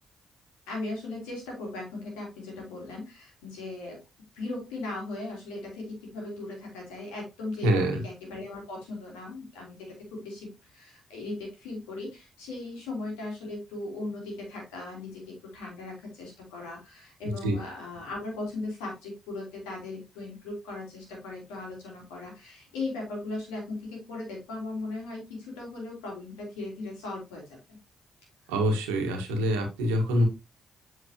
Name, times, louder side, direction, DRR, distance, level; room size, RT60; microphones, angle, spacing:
voice 1, 0.7-4.0 4.3-9.8 10.1-27.6, left 2 dB, 85° left, -1 dB, 3.5 m, -38 dB
voice 2, 7.6-8.0 17.4-17.6 28.5-30.3, equal, 85° right, 3 dB, 1.5 m, -25 dB
7.9 x 5.8 x 2.9 m, 0.24 s
hypercardioid pair, 45°, 0 cm